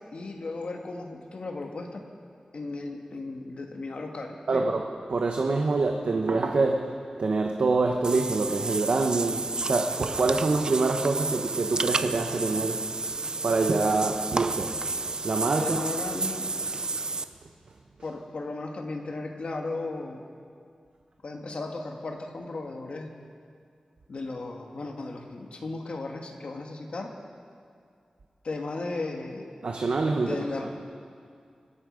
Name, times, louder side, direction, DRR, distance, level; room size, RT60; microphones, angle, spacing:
voice 1, 0.0-2.0 2.5-4.7 15.6-16.5 18.0-20.2 21.2-23.1 24.1-27.1 28.4-29.5 30.1-30.7, left 3 dB, 65° left, 3 dB, 1.5 m, -35 dB
voice 2, 4.5-4.8 5.1-12.9 13.4-14.9 15.2-15.8 17.2-17.3 29.6-30.5, right 3 dB, 70° right, 2 dB, 0.9 m, -26 dB
Water / Bathtub (filling or washing), 8.0-17.2, right 3 dB, 40° right, 0.5 m, -31 dB
25.5 x 8.5 x 5.1 m, 2.3 s
wide cardioid pair, 115°, 2 cm